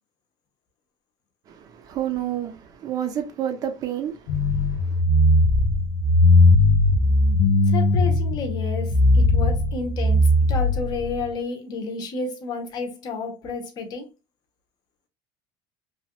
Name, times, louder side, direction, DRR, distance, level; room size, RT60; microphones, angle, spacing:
voice 1, 1.5-5.0, right 10 dB, 35° right, 0.6 m, -30 dB
sound 1, 4.3-11.2, left 2 dB, 70° left, 0.6 m, -18 dB
voice 2, 7.7-14.1, left 4 dB, 40° left, 0.8 m, -31 dB
2.9 x 2.3 x 2.9 m
cardioid pair, 165°, 11 cm